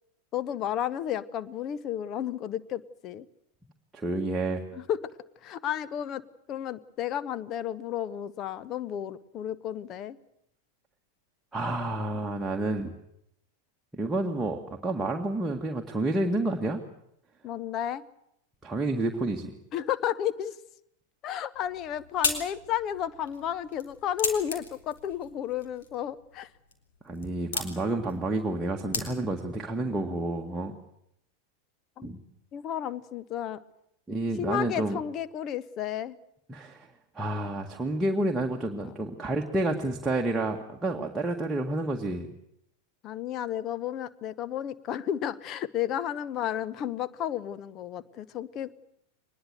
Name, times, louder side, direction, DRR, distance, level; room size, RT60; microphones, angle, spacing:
voice 1, 0.3-3.3 4.7-5.1 5.4-6.2 6.5-10.2 17.4-18.0 19.7-20.6 21.2-26.5 32.0-32.1 32.5-33.6 34.4-36.2 38.8-38.9 43.0-48.7, left 10 dB, 35° left, 15 dB, 1.0 m, -32 dB
voice 2, 3.9-4.6 11.5-12.9 13.9-16.8 18.6-19.5 27.0-30.7 32.0-32.2 34.1-35.0 36.5-36.9 37.1-42.3, right 2 dB, 10° right, -1 dB, 1.9 m, -29 dB
sound 1, 21.5-29.5, left 5 dB, 60° left, 3.7 m, -37 dB
23.0 x 20.5 x 8.0 m, 0.77 s
figure-of-eight pair, 90°, 0 cm